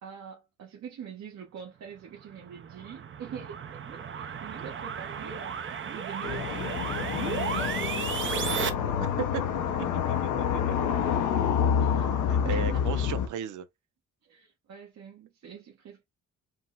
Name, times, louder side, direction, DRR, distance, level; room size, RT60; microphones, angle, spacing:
voice 1, 0.0-8.7 11.8-12.1 12.4-13.0 14.2-16.0, right 7 dB, 60° right, 1.4 m, -44 dB
sound 1, 2.2-8.7, right 7 dB, 40° right, 0.7 m, -34 dB
sound 2, 6.2-13.3, left 8 dB, 75° left, 0.8 m, -28 dB
voice 2, 9.8-10.6 11.0-11.4 12.3-13.7, right 8 dB, 80° right, 0.8 m, -36 dB
4.8 x 2.1 x 3.9 m
cardioid pair, 90°, 30 cm